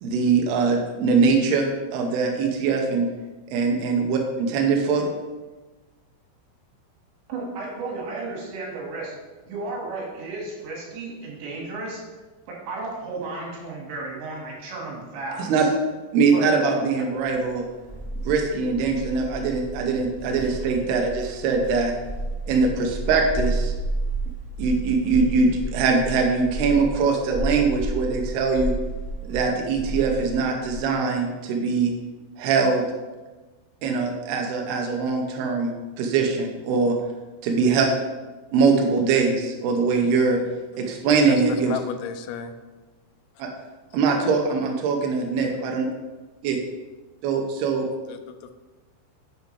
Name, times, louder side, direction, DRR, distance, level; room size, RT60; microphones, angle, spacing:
voice 1, 0.0-3.1 3.5-5.1 15.4-15.6 16.1-17.6 18.3-21.9 22.5-23.7 24.6-28.7 29.3-31.9 32.4-32.9 33.8-37.0 37.4-37.9 38.5-40.4 40.8-41.7 43.4-43.5 43.9-45.9 46.4-46.6 47.2-47.9, right 4 dB, 85° right, 2 dB, 2.3 m, -22 dB
voice 2, 7.3-9.2 9.5-12.0 12.5-15.7 16.3-16.5, right 3 dB, 65° right, -2 dB, 4.0 m, -33 dB
sound 1, 17.3-30.8, right 2 dB, 20° right, 1.5 m, -31 dB
voice 3, 41.3-42.6 48.1-48.5, left 8 dB, 85° left, 9 dB, 3.4 m, -33 dB
10.5 x 7.8 x 3.3 m, 1.2 s
omnidirectional pair, 5.9 m